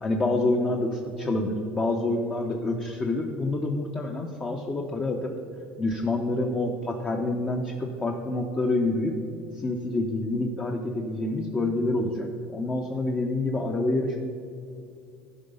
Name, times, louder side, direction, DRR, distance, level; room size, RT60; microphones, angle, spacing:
voice 1, 0.0-5.3 5.8-9.1 9.5-14.2, left 2 dB, 25° left, 2 dB, 0.8 m, -27 dB
11.5 x 4.7 x 5.4 m, 2.4 s
supercardioid pair, 110°, 5 cm